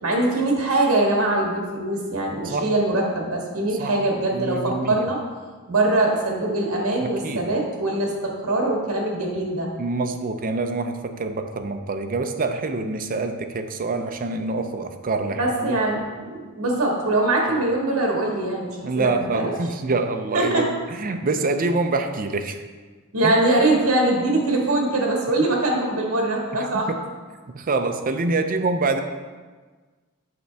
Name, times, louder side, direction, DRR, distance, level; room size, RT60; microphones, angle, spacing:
voice 1, 0.0-5.2 5.7-9.7 15.3-19.5 20.3-20.7 23.1-26.9, right 2 dB, 70° right, -1 dB, 1.7 m, -22 dB
voice 2, 4.3-5.0 7.0-7.4 9.8-15.8 18.8-22.6 23.2-23.3 26.5-27.0 27.5-29.0, right 3 dB, 40° right, 6 dB, 0.5 m, -26 dB
7.9 x 5.8 x 3.4 m, 1.4 s
head